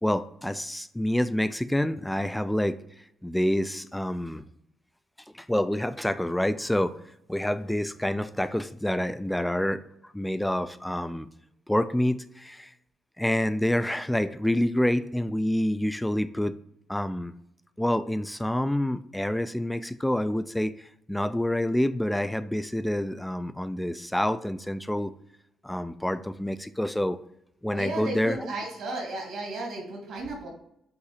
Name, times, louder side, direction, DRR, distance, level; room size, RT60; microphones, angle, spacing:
voice 1, 0.0-2.8 3.2-4.4 5.3-7.0 7.3-9.8 10.1-11.3 11.7-12.7 13.2-16.6 16.9-17.3 17.8-25.1 25.6-27.2 27.6-28.5, left 1 dB, 5° left, 13 dB, 0.4 m, -27 dB
voice 2, 27.7-30.5, right 2 dB, 75° right, -1 dB, 2.4 m, -34 dB
8.2 x 2.8 x 5.0 m, 0.76 s
cardioid pair, 90°, 0 cm